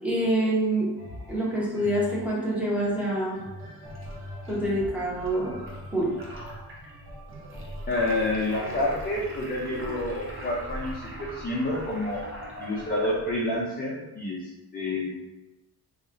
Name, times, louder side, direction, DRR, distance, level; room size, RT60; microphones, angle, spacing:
voice 1, 0.0-0.9 1.3-3.4 4.5-5.6 5.9-6.1, right 1 dB, 5° right, -7 dB, 0.9 m, -26 dB
sound 1, 1.0-10.8 11.4-11.5, left 1 dB, 60° right, 1.3 m, -45 dB
sound 2, 3.8-13.6, right 1 dB, 35° right, 0.5 m, -41 dB
voice 2, 7.9-12.2 12.6-15.1, left 1 dB, 25° left, -4 dB, 0.4 m, -29 dB
2.9 x 2.4 x 3.7 m, 0.98 s
wide cardioid pair, 170°, 39 cm